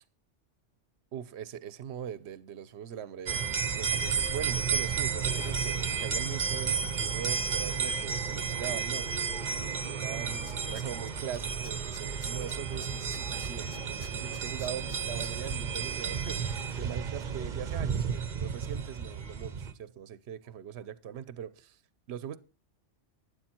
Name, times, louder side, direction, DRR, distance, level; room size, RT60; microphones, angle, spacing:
voice 1, 1.1-9.5 9.8-21.8 22.1-22.4, right 9 dB, 65° right, 1.0 m, -41 dB
sound 1, 3.3-19.7, right 6 dB, 40° right, 0.9 m, -32 dB
Tools, 9.8-9.9 10.2-11.4 11.6-15.3 15.7-15.8, left 4 dB, 30° left, 0.8 m, -50 dB
12.0 x 9.6 x 4.4 m
omnidirectional pair, 1.3 m